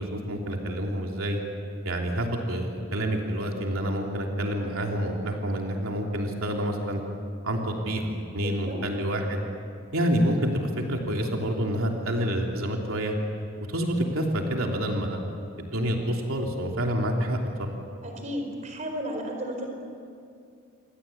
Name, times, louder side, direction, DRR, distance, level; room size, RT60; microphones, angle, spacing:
voice 1, 0.0-1.4 1.8-7.0 7.4-9.4 9.9-13.1 13.7-15.2 15.6-17.8, equal, 85° right, 1 dB, 3.2 m, -28 dB
voice 2, 8.4-8.8 18.0-19.7, equal, 35° right, 3 dB, 4.8 m, -33 dB
28.5 x 23.5 x 8.7 m, 2.4 s
head